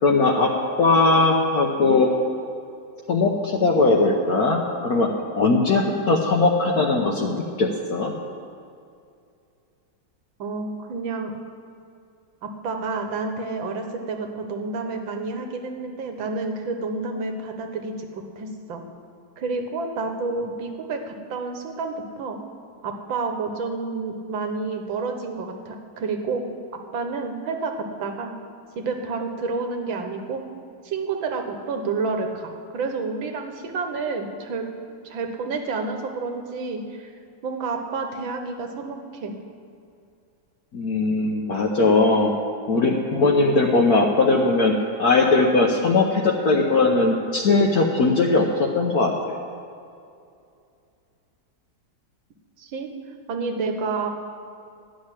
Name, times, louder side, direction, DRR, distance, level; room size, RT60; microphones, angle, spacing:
voice 1, 0.0-0.5 0.8-2.1 3.1-5.1 5.3-8.1 40.7-42.3 42.7-44.7 45.0-49.4, left 3 dB, 55° left, -1 dB, 1.2 m, -19 dB
voice 2, 10.4-11.3 12.4-18.1 18.4-18.8 19.4-22.4 22.8-26.4 26.9-28.3 28.8-30.4 30.8-34.7 35.0-37.1 37.4-39.3 52.6-52.9 53.3-54.1, right 4 dB, 75° right, 4 dB, 1.9 m, -29 dB
12.5 x 6.5 x 9.8 m, 2.5 s
omnidirectional pair, 2.2 m